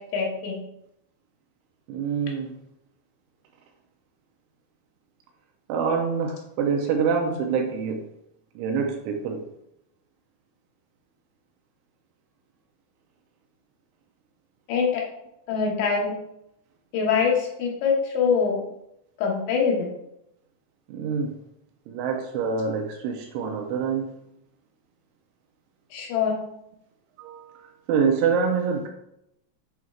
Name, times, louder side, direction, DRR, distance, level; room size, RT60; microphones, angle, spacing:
voice 1, 0.1-0.6 14.7-15.0 15.5-16.1 16.9-18.6 19.2-19.9 25.9-26.4, left 6 dB, 75° left, -1 dB, 2.9 m, -24 dB
voice 2, 1.9-2.5 5.7-8.0 8.6-9.4 20.9-21.3 21.9-24.1 27.2-27.5 27.9-28.9, right 6 dB, 80° right, 3 dB, 2.8 m, -25 dB
9.2 x 4.4 x 2.4 m, 0.80 s
omnidirectional pair, 5.7 m